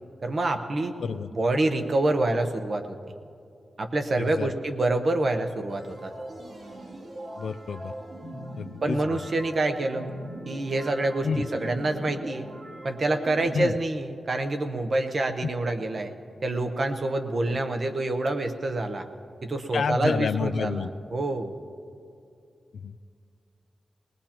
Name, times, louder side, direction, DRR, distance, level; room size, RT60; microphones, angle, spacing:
voice 1, 0.2-1.0 1.3-2.9 3.8-6.1 8.8-10.1 10.5-12.5 12.8-16.1 16.4-19.1 19.4-21.5, right 2 dB, 40° right, 7 dB, 0.9 m, -27 dB
voice 2, 1.0-1.3 4.1-4.5 7.4-7.9 8.6-9.2 11.2-11.5 13.5-13.8 15.4-15.5 17.4-17.6 19.7-20.9 22.7-23.1, left 6 dB, 75° left, 13 dB, 0.4 m, -29 dB
sound 1, 5.7-13.6, right 1 dB, 80° right, 2.7 m, -40 dB
21.0 x 20.0 x 2.9 m, 2.4 s
wide cardioid pair, 175°, 0 cm